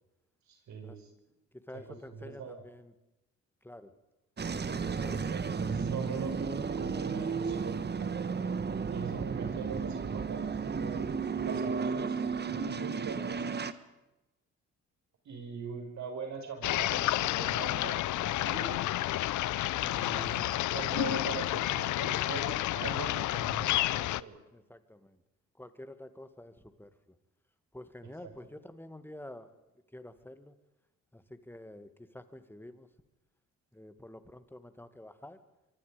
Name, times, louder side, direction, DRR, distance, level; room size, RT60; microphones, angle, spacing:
voice 1, 0.5-1.1 1.7-1.8 2.1-2.6 4.6-6.5 6.8-8.1 8.9-11.1 11.4-12.2 12.5-13.5 15.2-18.8 19.8-20.4 20.7-24.4 28.2-28.3, right 5 dB, 65° right, 4 dB, 6.2 m, -42 dB
voice 2, 1.5-2.9 3.6-3.9 4.8-5.4 24.5-25.2 25.5-27.2 27.7-29.5 29.9-30.6 31.1-32.9 33.7-35.4, left 1 dB, 5° left, 10 dB, 2.2 m, -49 dB
sound 1, 4.4-13.7, right 5 dB, 35° right, 1.5 m, -33 dB
sound 2, 16.6-24.2, left 15 dB, 75° left, 0.7 m, -30 dB
25.5 x 24.0 x 5.3 m, 0.97 s
cardioid pair, 90°, 30 cm